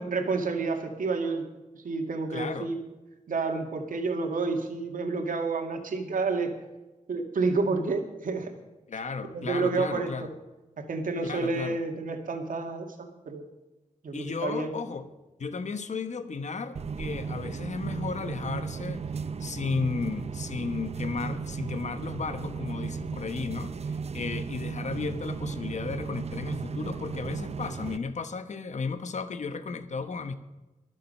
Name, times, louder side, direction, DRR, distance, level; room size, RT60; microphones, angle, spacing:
voice 1, 0.0-1.5 1.7-2.8 3.3-6.5 7.1-8.5 9.3-10.3 10.8-13.5 14.0-14.7, right 4 dB, 90° right, 4 dB, 2.1 m, -29 dB
voice 2, 2.3-2.7 8.9-10.3 11.2-11.8 14.1-15.1 15.4-19.0 19.4-30.3, left 4 dB, 60° left, 10 dB, 1.1 m, -34 dB
sound 1, 16.7-28.0, right 5 dB, 50° right, 0.7 m, -35 dB
22.5 x 7.6 x 5.5 m, 1.1 s
wide cardioid pair, 125°, 14 cm